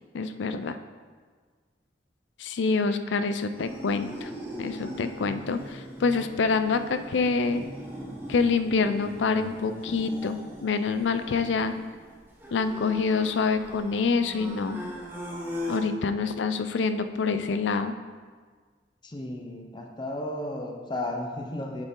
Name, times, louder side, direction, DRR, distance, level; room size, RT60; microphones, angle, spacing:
voice 1, 0.1-0.8 2.4-4.3 4.6-7.6 8.3-11.8 12.5-14.8 15.7-17.9, left 4 dB, 80° left, 10 dB, 0.4 m, -26 dB
sound 1, 3.5-15.8, equal, 10° right, 1.1 m, -39 dB
voice 2, 19.0-21.8, left 1 dB, 25° left, 2 dB, 0.8 m, -34 dB
7.3 x 6.2 x 3.8 m, 1.5 s
head